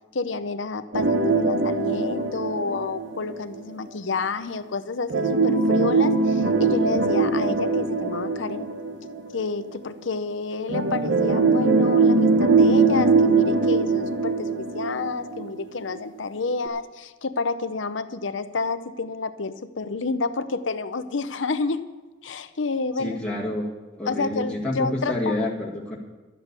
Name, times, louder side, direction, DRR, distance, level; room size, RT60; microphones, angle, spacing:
voice 1, 0.1-8.7 9.3-21.8 22.2-23.2 24.1-25.5, left 4 dB, 70° left, 12 dB, 0.7 m, -29 dB
sound 1, 0.9-3.6 5.1-9.5 10.7-15.6 16.0-16.1 16.7-16.8, right 3 dB, 70° right, 1.1 m, -21 dB
voice 2, 23.0-23.7 24.0-26.0, left 1 dB, 5° left, -4 dB, 1.8 m, -28 dB
12.5 x 8.2 x 8.1 m, 1.2 s
head